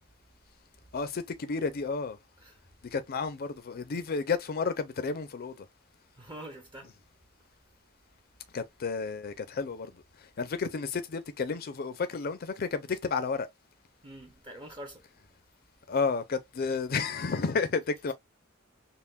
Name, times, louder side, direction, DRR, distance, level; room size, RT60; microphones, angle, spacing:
voice 1, 0.9-2.2 2.9-5.7 8.5-9.9 10.2-13.5 15.9-18.1, left 4 dB, 45° left, 0.5 m, -31 dB
voice 2, 6.2-6.9 14.0-15.0 18.0-18.1, right 1 dB, 25° right, 0.6 m, -45 dB
5.5 x 2.1 x 2.2 m
head